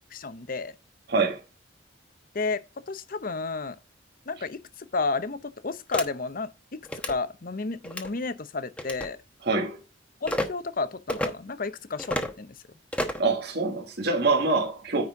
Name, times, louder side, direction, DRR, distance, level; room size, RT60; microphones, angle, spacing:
voice 1, 0.1-0.7 2.3-3.8 4.3-6.8 7.1-9.2 10.2-12.6, left 3 dB, 50° left, 0.7 m, -32 dB
voice 2, 1.1-1.4 9.4-9.8 13.2-15.0, right 3 dB, 60° right, 1.7 m, -25 dB
sound 1, 5.9-6.1 6.8-7.1 7.8-8.1 8.8-9.1 10.2-10.5 11.1-11.3 12.0-12.3 12.9-13.3, left 1 dB, 5° left, 1.0 m, -29 dB
9.6 x 4.3 x 4.7 m
head